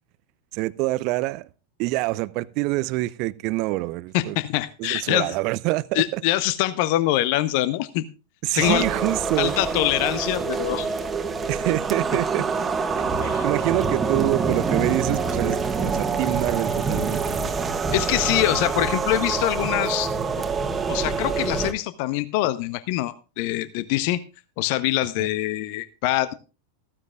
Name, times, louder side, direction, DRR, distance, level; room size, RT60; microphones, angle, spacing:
voice 1, 0.5-1.5 1.8-4.4 4.8-6.2 8.4-9.5 11.5-12.5 13.1-17.6 25.2-25.3, right 20 dB, 40° right, 0.5 m, -26 dB
voice 2, 4.1-5.3 5.9-8.0 8.5-8.8 9.4-10.9 13.2-13.4 17.9-20.1 20.9-24.2 24.6-26.3, left 15 dB, 45° left, 0.8 m, -24 dB
sound 1, 8.6-21.7, right 4 dB, 15° right, 1.5 m, -26 dB
15.0 x 14.5 x 2.4 m
figure-of-eight pair, 90°, 0 cm